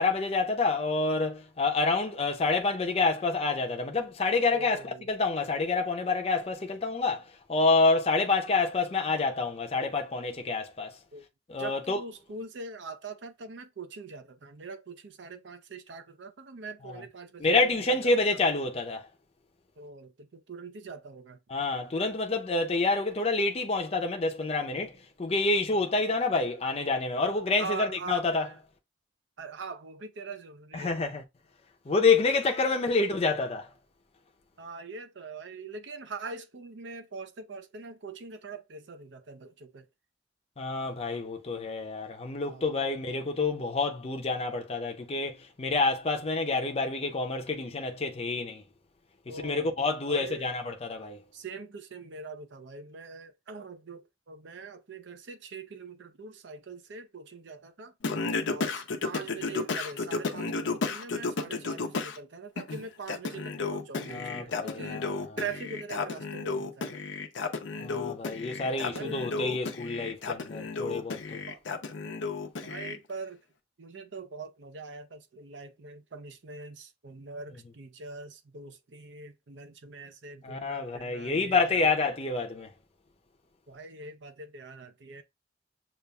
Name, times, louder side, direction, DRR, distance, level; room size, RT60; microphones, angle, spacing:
voice 1, 0.0-10.9 11.5-12.0 16.9-17.0 17.4-19.1 21.5-24.9 25.2-28.5 30.7-31.2 31.9-33.7 40.6-48.6 49.3-51.2 64.1-65.4 67.8-71.4 80.4-82.7, left 3 dB, 35° left, 0.5 m, -28 dB
voice 2, 4.5-5.1 11.1-11.2 11.6-18.1 19.8-21.4 25.7-25.9 27.6-28.6 29.4-31.0 32.4-32.8 34.6-39.9 42.4-42.8 43.1-43.3 49.3-49.7 50.0-50.5 51.3-57.9 58.5-65.0 65.4-67.0 68.8-69.2 71.5-71.6 72.6-73.4 73.8-81.9 83.7-85.2, right 4 dB, 70° right, 0.6 m, -42 dB
Singing, 58.0-62.2 62.6-73.0, left 4 dB, 80° left, 0.6 m, -33 dB
6.7 x 2.4 x 2.2 m
head